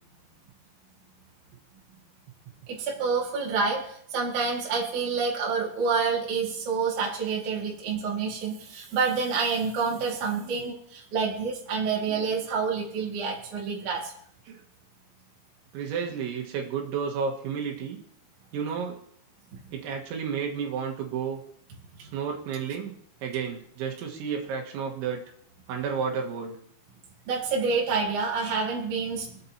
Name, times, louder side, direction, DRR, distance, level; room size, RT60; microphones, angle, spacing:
voice 1, 2.7-14.1 19.5-19.6 27.3-29.4, right 5 dB, 50° right, -3 dB, 3.2 m, -28 dB
voice 2, 15.7-18.0 18.5-19.0 19.7-21.4 22.0-25.2 25.7-26.6, right 6 dB, 90° right, 1 dB, 3.9 m, -32 dB
25.5 x 8.6 x 2.9 m, 0.68 s
omnidirectional pair, 5.2 m